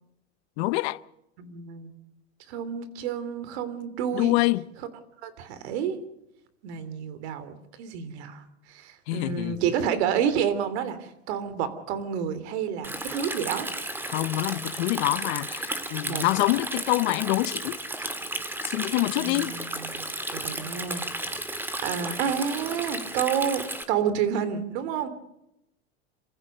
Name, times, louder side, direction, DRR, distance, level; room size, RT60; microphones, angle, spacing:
voice 1, 0.6-1.0 4.1-4.6 9.1-9.6 14.1-18.1 18.6-19.5, left 20 dB, 65° left, 0.8 m, -26 dB
voice 2, 1.4-1.9 2.5-4.4 5.2-6.0 6.6-13.7 16.0-16.3 19.2-21.4 21.8-25.1, right 8 dB, 70° right, 3.0 m, -30 dB
Stream, 12.8-23.8, right 1 dB, 5° right, 1.8 m, -33 dB
27.0 x 15.0 x 6.7 m
supercardioid pair, 130°, 34 cm